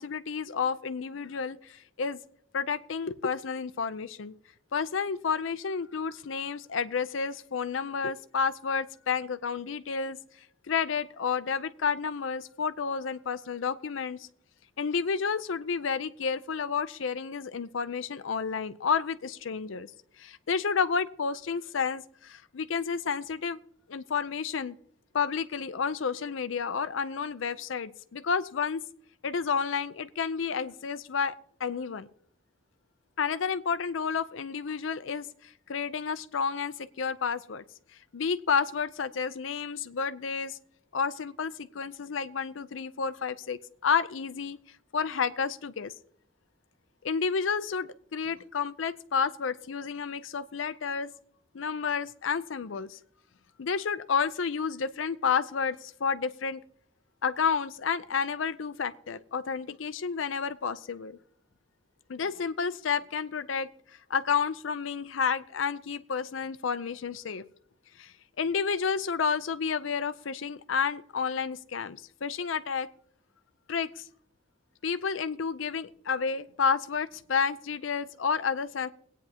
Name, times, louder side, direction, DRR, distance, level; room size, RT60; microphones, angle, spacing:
voice 1, 0.0-2.2 2.5-4.3 4.7-10.2 10.7-14.3 14.8-19.9 20.2-23.6 23.9-24.8 25.1-28.8 29.2-32.1 33.2-37.6 38.1-40.6 40.9-44.6 44.9-45.9 47.0-51.1 51.5-53.0 53.6-56.6 57.2-61.2 62.1-63.7 64.1-67.4 68.0-72.9 73.7-74.1 74.8-78.9, left 6 dB, 85° left, 13 dB, 0.6 m, -30 dB
22.5 x 9.1 x 2.8 m, 0.65 s
head